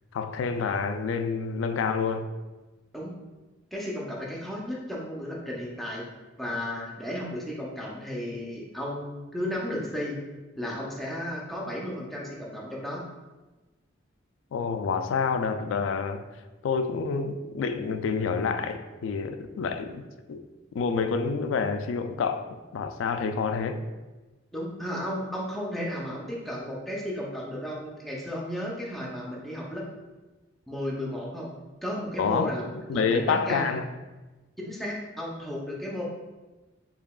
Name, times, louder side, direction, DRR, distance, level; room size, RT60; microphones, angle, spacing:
voice 1, 0.1-2.3 14.5-16.2 16.6-20.0 20.3-20.5 20.7-23.8 32.2-32.5 32.9-33.8, left 5 dB, 75° left, 9 dB, 0.3 m, -28 dB
voice 2, 3.7-6.0 6.4-10.2 10.6-13.0 24.5-29.8 30.7-31.5 31.8-32.6 32.9-33.7 34.6-36.0, equal, ahead, -4 dB, 0.6 m, -34 dB
4.7 x 2.8 x 2.3 m, 1.2 s
head